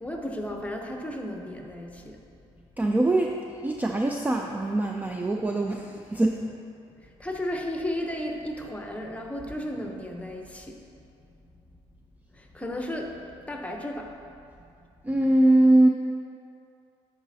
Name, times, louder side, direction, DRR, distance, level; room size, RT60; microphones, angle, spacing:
voice 1, 0.0-2.2 7.0-10.8 12.3-14.2, left 1 dB, 10° left, 2 dB, 0.9 m, -34 dB
voice 2, 2.8-6.5 15.0-15.9, right 1 dB, 10° right, 1 dB, 0.4 m, -22 dB
9.8 x 4.2 x 2.8 m, 2.5 s
supercardioid pair, 65°, 13 cm